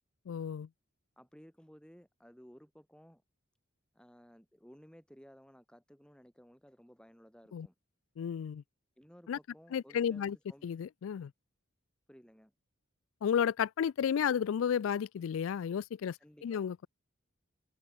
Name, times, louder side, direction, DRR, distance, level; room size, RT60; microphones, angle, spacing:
voice 1, 0.3-0.7 7.5-7.7 8.2-8.6 9.3-9.4 9.7-10.4 10.6-11.3 13.2-16.2 16.4-16.9, left 8 dB, 75° left, 0.3 m, -32 dB
voice 2, 1.2-3.2 3.9-7.7 9.0-10.7 12.1-12.5 16.2-16.6, equal, 5° left, 4.1 m, -57 dB
open air
head